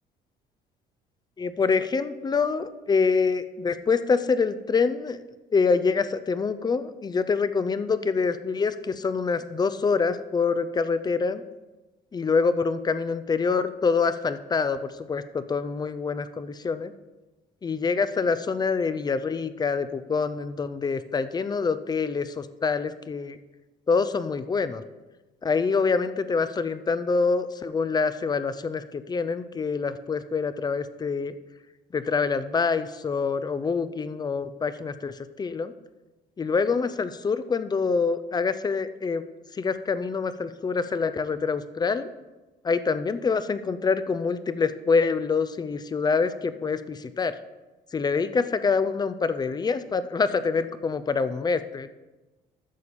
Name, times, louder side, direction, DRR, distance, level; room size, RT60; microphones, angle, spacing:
voice 1, 1.4-5.2 5.5-11.4 12.1-16.9 17.6-23.4 23.9-24.8 25.4-31.3 31.9-35.7 36.4-39.2 39.5-42.1 42.6-47.3 47.9-51.9, left 5 dB, 25° left, 13 dB, 0.6 m, -26 dB
11.0 x 6.9 x 4.2 m, 1.1 s
cardioid pair, 110°, 17 cm